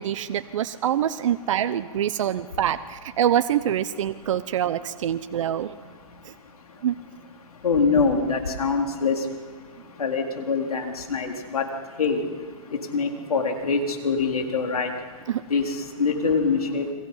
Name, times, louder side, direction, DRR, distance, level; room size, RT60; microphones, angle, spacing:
voice 1, 0.0-5.7 6.2-6.3 6.8-6.9 15.3-15.4, right 10 dB, 60° right, 11 dB, 0.9 m, -25 dB
voice 2, 7.6-9.2 10.0-11.7 12.0-12.2 12.9-14.9 15.5-15.7 16.0-16.9, left 4 dB, 85° left, 3 dB, 4.0 m, -24 dB
30.0 x 23.0 x 5.7 m, 1.5 s
hypercardioid pair, 145°, 18 cm